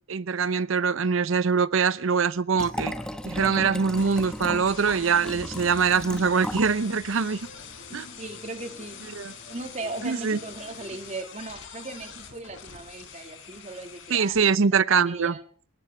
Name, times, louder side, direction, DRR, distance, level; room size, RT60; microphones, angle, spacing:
voice 1, 0.1-2.9 3.3-7.4 7.9-8.1 9.2-9.3 10.0-10.4 14.1-15.3, right 5 dB, 75° right, 0.6 m, -23 dB
Liquid, 2.5-6.8 7.1-7.2, equal, 5° left, 1.0 m, -35 dB
sound 1, 3.9-14.4, left 7 dB, 65° left, 4.0 m, -45 dB
sound 2, 5.3-11.0, left 1 dB, 35° left, 6.3 m, -49 dB
voice 2, 8.2-9.0 9.5-14.4 14.7-15.4, right 2 dB, 35° right, 1.9 m, -38 dB
22.0 x 18.0 x 3.4 m
head